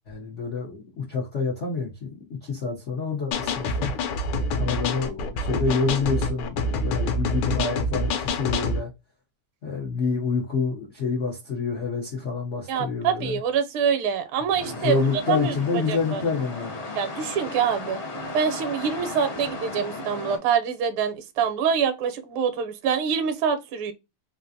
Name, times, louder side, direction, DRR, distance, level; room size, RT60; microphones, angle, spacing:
voice 1, 0.1-2.1 2.4-3.9 4.6-8.9 9.6-13.3 14.8-16.8, left 4 dB, 90° left, 0.6 m, -27 dB
sound 1, 3.3-8.8, left 2 dB, 75° left, 1.4 m, -26 dB
voice 2, 12.7-15.6 15.9-16.2 17.0-18.0 18.3-23.9, right 7 dB, 75° right, 1.4 m, -25 dB
sound 2, 14.6-20.4, left 2 dB, 55° left, 0.7 m, -35 dB
3.8 x 2.4 x 2.6 m
omnidirectional pair, 2.4 m